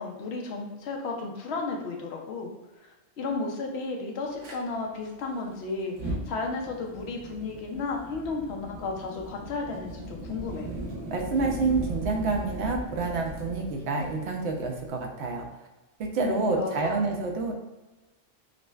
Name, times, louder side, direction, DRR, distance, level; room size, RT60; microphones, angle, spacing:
voice 1, 0.0-2.5 3.2-10.7 16.2-17.0, left 3 dB, 70° left, 1 dB, 0.8 m, -33 dB
Fire, 4.4-4.6 5.8-14.9, right 1 dB, 90° right, 1.1 m, -38 dB
voice 2, 11.1-15.5 16.0-17.5, right 3 dB, 70° right, 2 dB, 0.8 m, -28 dB
5.0 x 2.1 x 2.2 m, 1.1 s
omnidirectional pair, 1.2 m